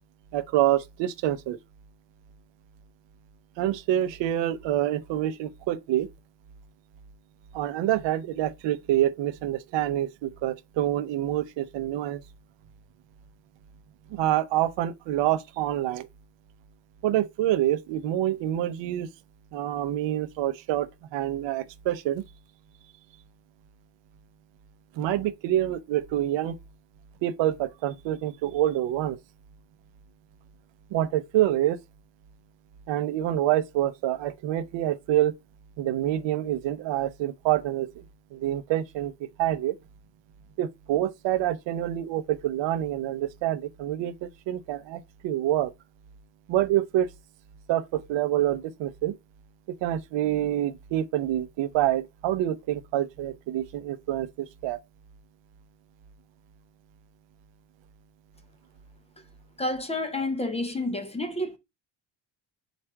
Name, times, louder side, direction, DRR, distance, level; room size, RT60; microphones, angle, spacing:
voice 1, 0.3-1.6 3.6-6.1 7.5-12.2 14.1-16.1 17.0-19.1 19.5-22.2 25.0-26.5 27.2-29.2 30.9-31.8 32.9-35.4 35.8-38.0 38.3-39.8 40.6-45.7 46.5-47.1 47.7-49.1 49.7-54.8, right 13 dB, 70° right, 0.6 m, -27 dB
voice 2, 59.6-61.6, left 2 dB, 15° left, 0.5 m, -29 dB
4.4 x 2.4 x 4.6 m
cardioid pair, 125°, 45 cm